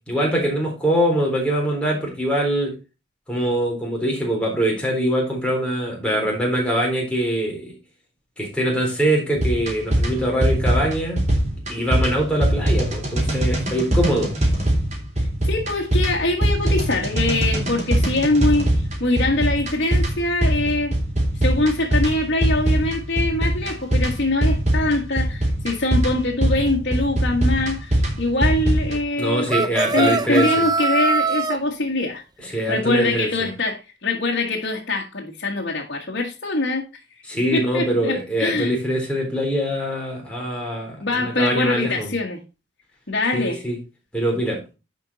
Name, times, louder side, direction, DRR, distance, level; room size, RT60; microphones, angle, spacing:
voice 1, 0.1-2.7 3.3-7.7 8.4-11.2 11.7-14.3 29.2-30.5 32.4-33.5 37.3-42.1 43.3-43.8 44.1-44.6, right 1 dB, 5° left, 3.6 m, -23 dB
sound 1, 9.4-29.0, right 1 dB, 40° right, 3.4 m, -22 dB
voice 2, 15.4-20.9 21.4-29.5 29.9-36.9 37.5-38.7 41.0-42.4 43.1-43.6, left 2 dB, 65° left, 1.6 m, -23 dB
sound 2, 29.5-31.6, right 4 dB, 20° right, 0.4 m, -22 dB
10.5 x 5.3 x 4.0 m
head